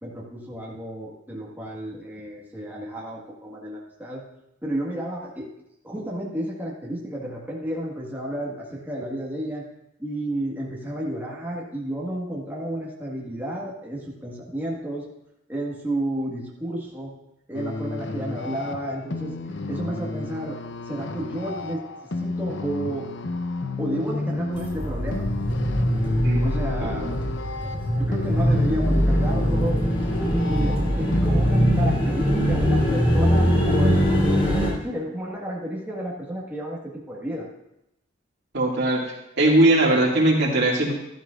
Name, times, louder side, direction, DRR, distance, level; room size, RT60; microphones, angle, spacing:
voice 1, 0.0-4.2 4.6-5.5 5.8-9.6 10.0-15.1 15.5-17.1 17.5-19.3 19.7-21.8 22.2-23.1 23.8-25.3 26.4-27.1 28.0-29.8 30.2-34.1 34.8-37.5, right 1 dB, 10° right, -4 dB, 1.6 m, -31 dB
sound 1, 17.5-31.3, left 3 dB, 65° left, 0.7 m, -32 dB
sound 2, 24.5-34.7, equal, 30° left, 3.6 m, -22 dB
voice 2, 26.8-27.1 38.5-39.0 39.4-40.9, right 1 dB, 60° right, -2 dB, 2.3 m, -20 dB
13.5 x 12.0 x 2.5 m, 0.85 s
head